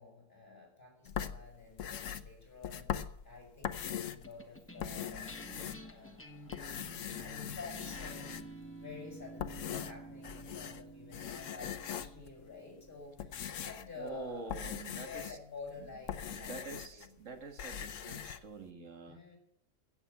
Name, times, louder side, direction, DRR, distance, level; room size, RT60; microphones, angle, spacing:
voice 1, 0.0-5.3 5.8-6.7 7.2-8.5 8.8-17.1 19.1-19.4, left 4 dB, 45° left, 1 dB, 6.2 m, -50 dB
sound 1, 1.1-4.3 4.7-6.2 6.5-8.7 9.2-10.8 11.1-12.3 12.9-17.1 17.3-18.4, left 9 dB, 90° left, 1.1 m, -41 dB
sound 2, 4.2-14.8, right 1 dB, 10° left, 1.2 m, -51 dB
voice 2, 14.0-15.4 15.8-15.9 16.3-19.2, right 4 dB, 90° right, 6 dB, 1.9 m, -46 dB
16.0 x 7.2 x 8.1 m, 0.72 s
omnidirectional pair, 1.3 m